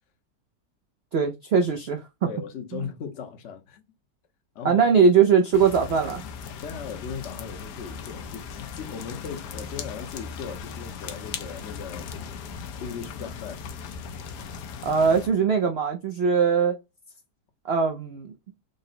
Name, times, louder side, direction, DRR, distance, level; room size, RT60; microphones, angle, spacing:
voice 1, 1.1-2.0 2.7-2.8 4.6-6.2 14.8-16.8 17.6-18.3, right 6 dB, 90° right, 0.5 m, -21 dB
voice 2, 2.3-3.8 4.5-4.8 6.6-12.1 12.8-13.8, left 6 dB, 55° left, 0.9 m, -38 dB
sound 1, 5.5-15.3, left 6 dB, 80° left, 1.2 m, -38 dB
3.8 x 2.1 x 4.0 m
omnidirectional pair, 1.8 m